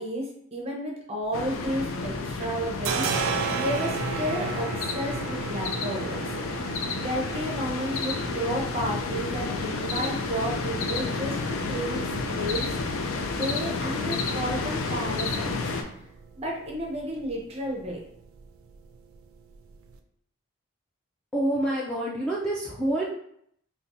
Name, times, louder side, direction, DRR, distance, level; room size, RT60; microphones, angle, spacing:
voice 1, 0.0-3.1 3.6-6.3 7.0-12.7 13.3-15.6 16.3-18.0, equal, 30° right, -1 dB, 0.7 m, -32 dB
sound 1, 1.3-15.8, left 3 dB, 75° left, 0.4 m, -31 dB
sound 2, 1.3-2.2 2.4-20.0, right 5 dB, 80° right, 0.3 m, -37 dB
voice 2, 21.3-23.0, right 1 dB, 5° left, -6 dB, 0.3 m, -27 dB
4.1 x 2.1 x 2.6 m, 0.69 s
head